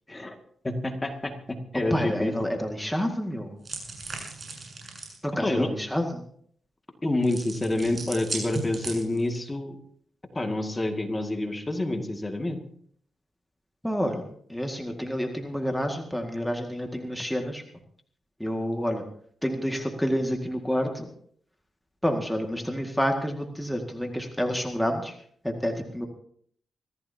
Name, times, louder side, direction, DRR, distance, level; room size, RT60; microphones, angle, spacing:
voice 1, 0.6-2.3 5.4-5.7 7.0-9.8 10.3-12.6, left 2 dB, 20° left, 4 dB, 2.1 m, -28 dB
voice 2, 1.9-3.5 5.2-6.2 13.8-17.6 18.4-19.0 19.4-21.1 22.0-25.2 25.4-26.1, equal, 5° left, 3 dB, 2.0 m, -29 dB
sound 1, 3.6-5.2 7.2-9.4, right 3 dB, 40° right, 7.8 m, -36 dB
24.0 x 15.0 x 2.8 m, 0.62 s
cardioid pair, 75°, 0 cm